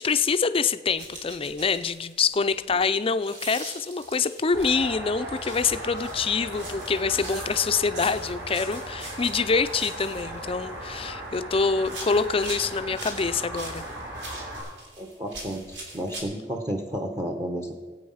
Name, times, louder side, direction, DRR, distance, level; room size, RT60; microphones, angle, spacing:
voice 1, 0.0-13.8, left 5 dB, 30° left, 11 dB, 0.5 m, -25 dB
sound 1, 0.9-4.9 5.3-11.4 11.8-16.2, right 2 dB, 90° right, 3.4 m, -42 dB
sound 2, 4.5-14.6, right 1 dB, 60° right, 5.4 m, -37 dB
voice 2, 15.0-17.7, right 1 dB, 20° right, 3 dB, 1.0 m, -32 dB
17.5 x 8.6 x 5.6 m, 1.5 s
head